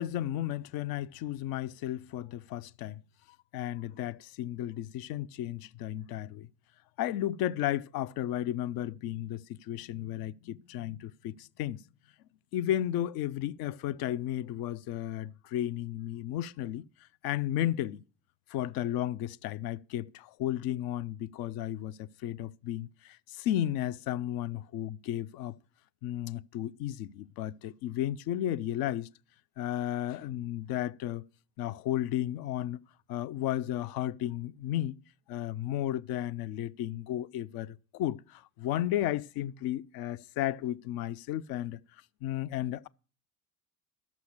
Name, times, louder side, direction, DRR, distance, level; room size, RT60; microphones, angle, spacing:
voice 1, 0.0-3.0 3.5-6.5 7.0-11.8 12.5-16.8 17.2-18.0 18.5-25.6 26.0-29.1 29.6-31.2 31.6-32.8 33.1-35.0 35.3-41.8 42.2-42.9, left 12 dB, 55° left, 0.6 m, -33 dB
12.0 x 6.9 x 6.5 m
hypercardioid pair, 60°, 43 cm